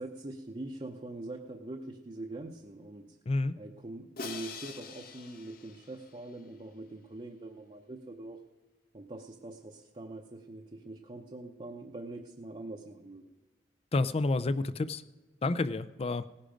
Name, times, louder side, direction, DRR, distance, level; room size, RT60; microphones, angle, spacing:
voice 1, 0.0-3.2 3.6-8.4 8.9-13.3, right 2 dB, 30° right, 1 dB, 0.8 m, -43 dB
voice 2, 3.3-3.6 13.9-15.0 15.4-16.2, left 2 dB, 35° left, 16 dB, 0.5 m, -29 dB
Crash cymbal, 4.2-6.4, left 4 dB, 55° left, 1.1 m, -44 dB
17.5 x 10.0 x 5.1 m, 1.3 s
head